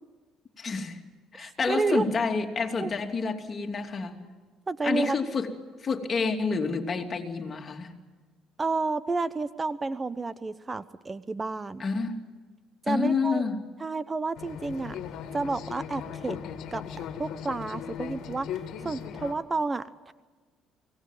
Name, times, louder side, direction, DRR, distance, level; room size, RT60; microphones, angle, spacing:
voice 1, 0.6-1.0 1.3-4.2 4.8-5.5 5.8-7.9 11.8-12.1 12.9-13.6, left 4 dB, 40° left, 4 dB, 2.8 m, -29 dB
voice 2, 1.3-2.0 2.8-2.9 4.7-5.2 8.6-11.8 12.8-13.4 13.8-15.0 15.3-16.4 16.7-18.6 18.8-20.1, right 3 dB, 25° right, 16 dB, 0.8 m, -30 dB
sound 1, 14.4-19.3, left 8 dB, 65° left, 2.1 m, -38 dB
24.5 x 18.0 x 9.3 m, 1.4 s
supercardioid pair, 65°, 0 cm